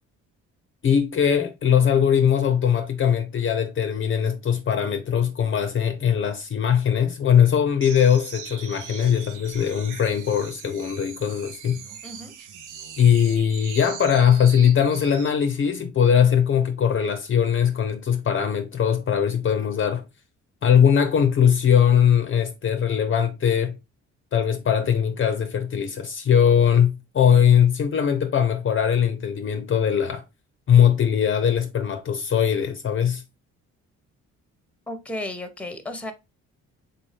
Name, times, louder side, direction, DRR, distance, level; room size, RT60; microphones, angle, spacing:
voice 1, 0.8-11.8 13.0-20.0 20.6-23.8 24.3-30.2 30.7-33.2, left 8 dB, 40° left, 0.5 m, -20 dB
sound 1, 7.8-15.4, right 7 dB, 85° right, 0.7 m, -41 dB
voice 2, 12.0-12.3 34.9-36.1, left 1 dB, 5° left, 0.7 m, -33 dB
3.9 x 2.7 x 3.2 m
cardioid pair, 90°, 30 cm